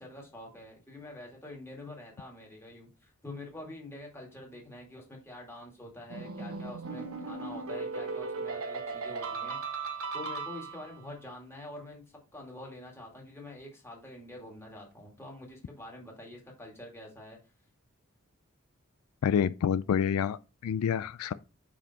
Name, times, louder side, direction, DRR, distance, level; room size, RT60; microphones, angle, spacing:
voice 1, 0.0-9.6 10.1-12.0 12.3-17.4, left 1 dB, 10° left, 2.1 m, -46 dB
sound 1, 6.1-11.0, right 4 dB, 80° right, 1.3 m, -37 dB
voice 2, 19.2-21.3, left 7 dB, 85° left, 0.3 m, -28 dB
5.5 x 5.0 x 4.1 m
head